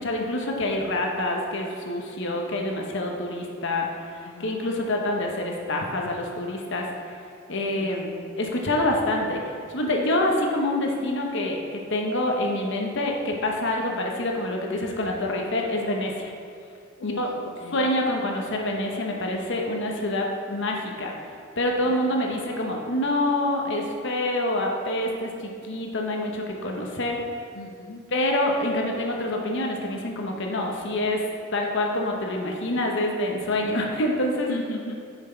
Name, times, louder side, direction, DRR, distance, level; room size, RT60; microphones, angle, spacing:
voice 1, 0.0-6.9 7.5-16.3 17.0-17.3 17.7-21.1 21.6-27.2 28.1-31.2 31.5-34.5, left 1 dB, 60° left, 1 dB, 1.0 m, -26 dB
voice 2, 4.2-4.6 7.7-7.9 13.8-14.2 17.0-17.8 21.8-21.9 27.5-28.0 34.5-35.0, left 2 dB, 90° left, 1 dB, 0.7 m, -37 dB
7.1 x 6.0 x 4.4 m, 2.3 s
head